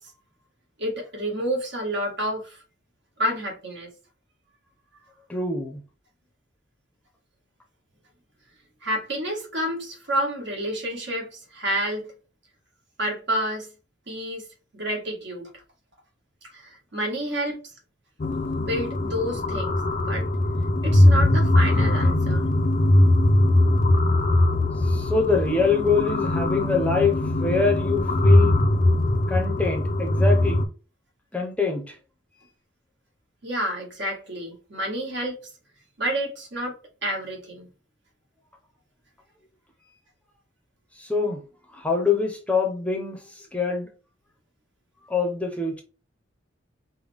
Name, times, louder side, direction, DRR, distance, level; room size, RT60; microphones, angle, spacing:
voice 1, 0.8-2.6 3.2-3.9 8.8-12.1 13.0-13.7 14.1-14.5 14.7-15.6 16.5-17.6 18.6-20.3 20.8-22.5 33.4-35.4 36.0-37.7, equal, 65° right, 1.8 m, -29 dB
voice 2, 5.3-5.8 24.8-28.6 29.3-30.6 31.3-32.0 41.0-41.4 41.7-43.9 45.1-45.8, left 4 dB, 5° left, 0.8 m, -25 dB
sound 1, 18.2-30.7, left 1 dB, 45° left, 0.6 m, -21 dB
5.3 x 2.2 x 3.5 m
head